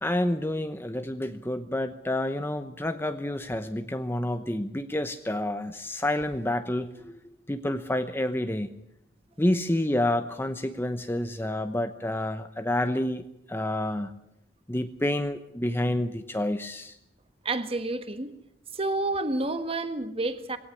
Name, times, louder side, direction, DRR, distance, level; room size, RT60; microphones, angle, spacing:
voice 1, 0.0-7.1 7.5-8.7 9.4-13.2 13.5-14.1 14.7-16.9, left 1 dB, 15° left, 0.9 m, -29 dB
voice 2, 17.4-18.3 18.7-20.6, right 2 dB, 30° right, 1.5 m, -29 dB
21.0 x 17.5 x 9.7 m
head